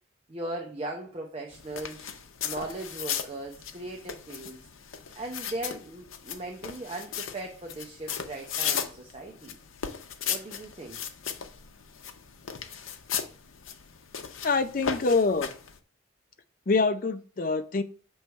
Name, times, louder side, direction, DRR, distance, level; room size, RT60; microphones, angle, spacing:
voice 1, 0.3-2.1 2.4-4.6 5.2-9.6 10.3-11.0, right 2 dB, 30° right, 0.7 m, -38 dB
sound 1, 1.5-15.8, left 8 dB, 90° left, 0.7 m, -36 dB
voice 2, 14.4-15.5 16.7-17.8, left 4 dB, 45° left, 0.5 m, -25 dB
6.7 x 3.1 x 4.5 m
head